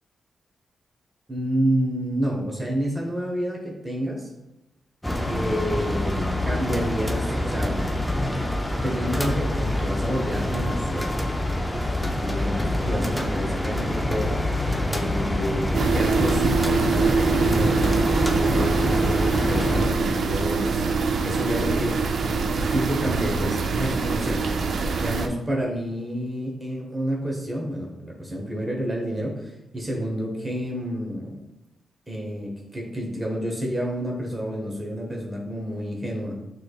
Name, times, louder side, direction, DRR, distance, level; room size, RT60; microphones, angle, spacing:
voice 1, 1.3-4.3 5.3-7.9 8.8-11.1 12.2-14.4 14.9-17.8 18.3-20.8 21.2-22.0 22.7-24.4 24.7-31.4 32.1-36.3, equal, 25° right, -1 dB, 0.9 m, -29 dB
sound 1, 5.0-19.9, left 1 dB, 5° left, 0.5 m, -26 dB
sound 2, 15.7-25.3, right 4 dB, 75° right, 0.4 m, -24 dB
6.3 x 3.2 x 2.3 m, 0.91 s
cardioid pair, 95°, 0 cm